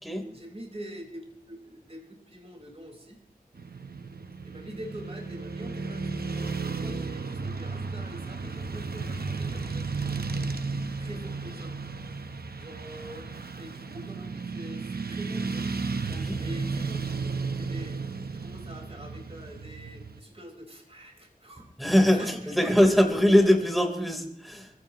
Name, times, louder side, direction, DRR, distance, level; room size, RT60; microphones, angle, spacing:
voice 1, 0.3-3.2 4.4-10.6 11.0-11.8 12.1-15.7 16.4-18.0 18.3-22.8, equal, 40° right, -1 dB, 4.6 m, -45 dB
Motorcycle / Traffic noise roadway noise, 3.6-20.2, right 4 dB, 85° right, 0.9 m, -34 dB
voice 2, 16.1-16.4 21.8-24.7, equal, ahead, 3 dB, 3.6 m, -22 dB
25.0 x 15.5 x 3.0 m, 0.74 s
wide cardioid pair, 45°, 16 cm